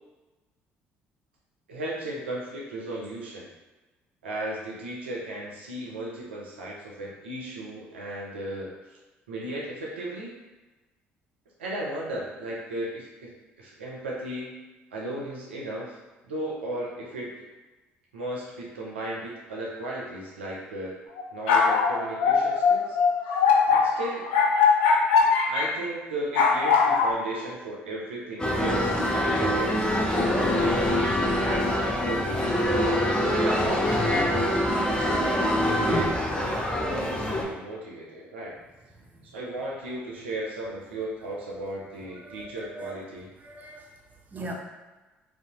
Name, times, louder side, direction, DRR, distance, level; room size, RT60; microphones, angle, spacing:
voice 1, 1.7-3.5 4.2-8.7 9.3-10.4 11.6-14.6 14.9-15.9 16.2-17.3 18.1-20.9 21.3-23.0 23.7-24.2 25.5-29.9 30.4-32.5 33.2-34.4 34.9-38.6 39.3-43.3, right 1 dB, 85° right, -4 dB, 0.4 m, -35 dB
sound 1, 21.2-25.7 26.3-27.1, left 5 dB, 75° left, 0.3 m, -21 dB
sound 2, 28.4-37.4, left 1 dB, 15° left, 0.5 m, -24 dB
voice 2, 42.2-43.0 43.4-43.9 44.3-44.5, right 2 dB, 30° right, -1 dB, 0.6 m, -39 dB
2.6 x 2.0 x 2.8 m, 1.2 s
hypercardioid pair, 55°, 6 cm